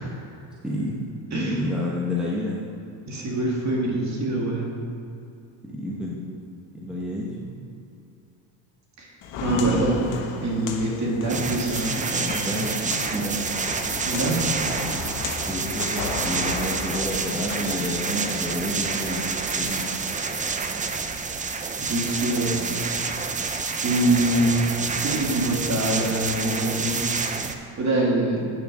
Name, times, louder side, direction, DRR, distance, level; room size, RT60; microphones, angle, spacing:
voice 1, 0.6-1.0 1.3-2.6 5.6-7.6 9.5-10.1 12.2-13.6 15.5-19.9, left 1 dB, ahead, -5 dB, 1.1 m, -30 dB
voice 2, 1.3-1.6 3.1-4.8 9.0-9.1 9.4-10.0 10.4-12.5 14.1-14.6 21.8-22.8 23.2-23.4 23.8-24.7 25.0-28.5, right 1 dB, 35° right, -3 dB, 2.4 m, -25 dB
Walk footsteps, 9.2-18.0, left 5 dB, 65° left, 1.2 m, -35 dB
sound 1, 11.3-27.5, right 4 dB, 15° right, 0.4 m, -28 dB
9.0 x 6.6 x 6.2 m, 2.6 s
cardioid pair, 130°, 46 cm